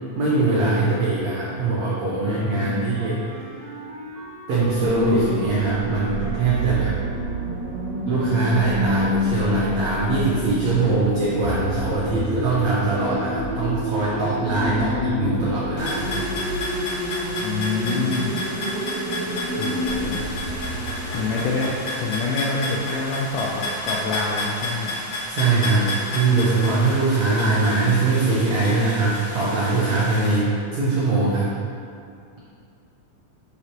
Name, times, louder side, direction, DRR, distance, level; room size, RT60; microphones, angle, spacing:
voice 1, 0.1-3.5 4.5-6.9 8.1-16.3 25.3-31.6, right 3 dB, 85° right, -7 dB, 1.5 m, -22 dB
Wind instrument woodwind instrument, 2.1-7.4, right 1 dB, 45° left, 1.2 m, -40 dB
voice 2, 2.6-2.9 14.6-15.5 17.4-18.5 19.3-20.3 21.1-24.9, left 3 dB, 80° left, -3 dB, 1.9 m, -27 dB
sound 1, 4.6-22.8, equal, 60° right, 1.7 m, -29 dB
sound 2, 15.8-30.4, left 1 dB, 60° left, 1.4 m, -31 dB
8.1 x 5.0 x 2.9 m, 2.4 s
omnidirectional pair, 4.2 m